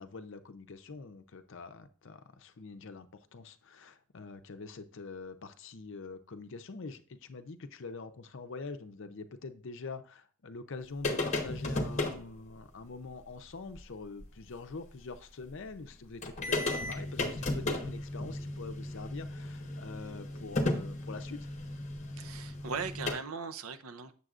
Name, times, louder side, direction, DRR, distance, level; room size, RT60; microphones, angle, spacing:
voice 1, 0.0-21.5, left 4 dB, 55° left, 9 dB, 0.6 m, -45 dB
sound 1, 11.0-12.2 13.8-13.9 14.2-14.3 15.9-16.0 16.2-23.1, left 2 dB, 30° left, 1.0 m, -34 dB
voice 2, 22.2-24.1, right 5 dB, 75° right, 11 dB, 0.6 m, -39 dB
7.8 x 6.8 x 2.4 m, 0.42 s
head